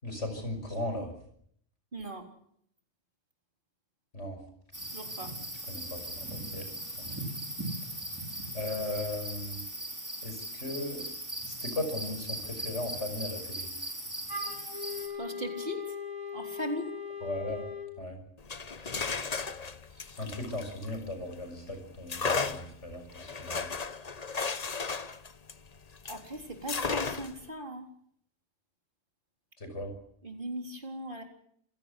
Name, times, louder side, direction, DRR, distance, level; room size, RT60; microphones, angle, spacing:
voice 1, 0.0-1.1 4.1-4.4 5.7-6.6 7.0-7.3 8.5-9.6 10.2-11.0 11.4-13.7 17.2-17.6 18.0-18.2 20.2-23.7 29.6-29.9, left 1 dB, 70° left, 6 dB, 6.2 m, -37 dB
voice 2, 1.9-2.2 4.9-5.3 15.2-15.8 16.3-16.9 20.0-20.1 26.1-27.9 30.2-31.2, equal, 45° right, 3 dB, 3.9 m, -38 dB
sound 1, 4.7-15.1, right 1 dB, 15° right, 5.5 m, -39 dB
Wind instrument woodwind instrument, 14.3-17.9, left 5 dB, 75° right, 4.4 m, -39 dB
sound 2, 18.4-21.4 22.1-26.3 26.7-27.5, left 4 dB, 35° left, 1.0 m, -34 dB
27.0 x 17.0 x 8.2 m, 0.68 s
omnidirectional pair, 1.3 m